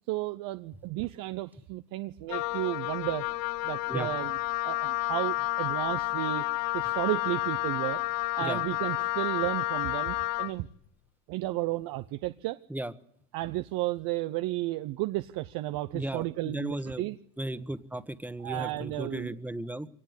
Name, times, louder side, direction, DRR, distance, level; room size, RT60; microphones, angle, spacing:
voice 1, 0.1-3.3 3.6-4.4 4.6-6.4 6.7-8.0 8.4-10.7 11.3-12.6 13.3-17.2 18.4-19.3, right 17 dB, 60° right, 12 dB, 0.8 m, -33 dB
Wind instrument woodwind instrument, 2.3-10.6, left 18 dB, 60° left, 0.8 m, -30 dB
voice 2, 15.9-17.0 17.4-19.9, right 1 dB, 5° right, 11 dB, 1.4 m, -35 dB
23.5 x 18.5 x 8.1 m, 0.73 s
hypercardioid pair, 85°, 38 cm